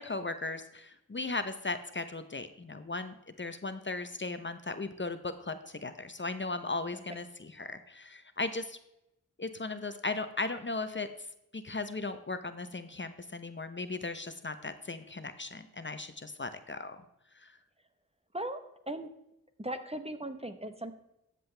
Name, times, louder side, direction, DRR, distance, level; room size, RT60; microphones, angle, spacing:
voice 1, 0.0-8.8 9.4-11.1 11.5-17.0 17.4-17.5, left 3 dB, 35° left, 10 dB, 0.8 m, -37 dB
voice 2, 19.6-20.9, right 1 dB, 20° right, 9 dB, 1.0 m, -37 dB
13.5 x 7.7 x 3.3 m, 0.85 s
wide cardioid pair, 60°, 32 cm